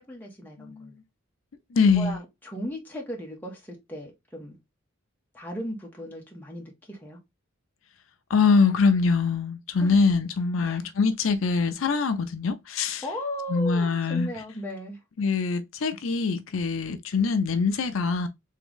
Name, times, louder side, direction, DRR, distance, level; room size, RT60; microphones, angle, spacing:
voice 1, 0.1-0.9 1.9-4.6 5.3-7.2 9.8-10.0 10.6-10.8 13.0-15.0, left 1 dB, 10° left, 1.3 m, -36 dB
voice 2, 0.6-1.0 1.7-2.2 8.3-13.0 13.5-14.3 15.2-18.3, left 4 dB, 80° left, 0.6 m, -23 dB
3.7 x 3.4 x 3.6 m
head